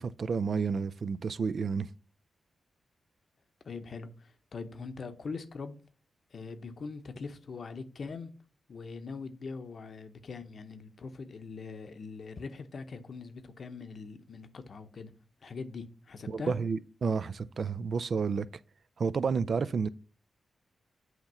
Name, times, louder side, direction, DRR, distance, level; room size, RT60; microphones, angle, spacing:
voice 1, 0.0-1.9 16.3-18.5 19.0-19.9, right 5 dB, 60° right, 0.3 m, -30 dB
voice 2, 3.6-5.8 6.3-8.3 8.7-15.1 15.4-16.5, left 4 dB, 60° left, 0.8 m, -42 dB
7.9 x 2.9 x 5.5 m
cardioid pair, 55°, 0 cm